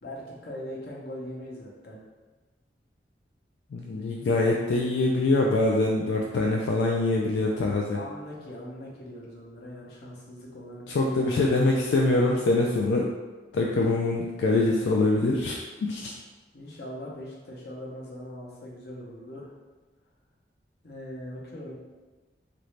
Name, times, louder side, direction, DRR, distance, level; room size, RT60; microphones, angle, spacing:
voice 1, 0.0-2.0 7.9-12.1 16.5-19.5 20.8-21.8, left 1 dB, 60° left, -4 dB, 0.8 m, -41 dB
voice 2, 3.7-8.0 10.9-13.1 13.5-16.1, left 2 dB, 85° left, -1 dB, 0.3 m, -24 dB
3.0 x 2.6 x 3.2 m, 1.3 s
head